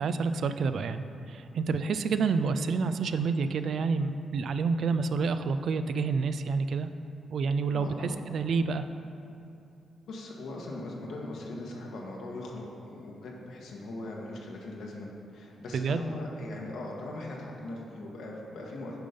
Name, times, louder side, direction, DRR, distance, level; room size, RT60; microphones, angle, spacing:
voice 1, 0.0-6.9 7.3-8.9 15.7-16.0, right 4 dB, 65° right, 10 dB, 0.4 m, -28 dB
voice 2, 7.7-8.2 10.1-15.1 15.3-19.0, left 2 dB, 75° left, -1 dB, 1.5 m, -40 dB
8.9 x 5.3 x 5.2 m, 2.7 s
cardioid pair, 100°, 0 cm